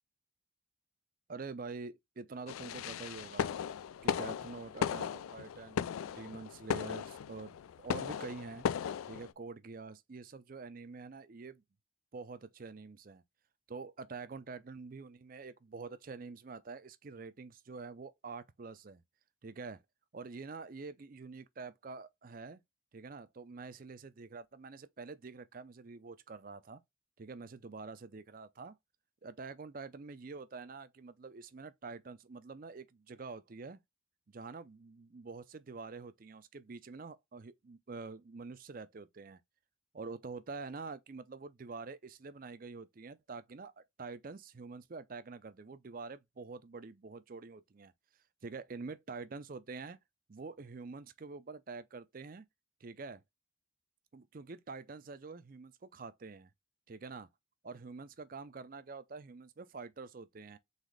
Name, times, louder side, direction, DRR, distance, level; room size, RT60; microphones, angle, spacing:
voice 1, 1.3-3.5 4.0-8.6 9.1-11.6 12.1-13.2 13.7-19.0 19.4-19.8 20.1-22.6 22.9-26.8 27.2-28.8 29.2-33.8 34.3-39.4 39.9-47.9 48.4-50.0 50.3-52.5 52.8-53.2 54.1-56.5 56.9-57.3 57.6-60.6, right 4 dB, 45° right, 0.5 m, -46 dB
sound 1, 2.5-9.3, left 7 dB, 90° left, 0.3 m, -37 dB
4.0 x 3.6 x 3.2 m
head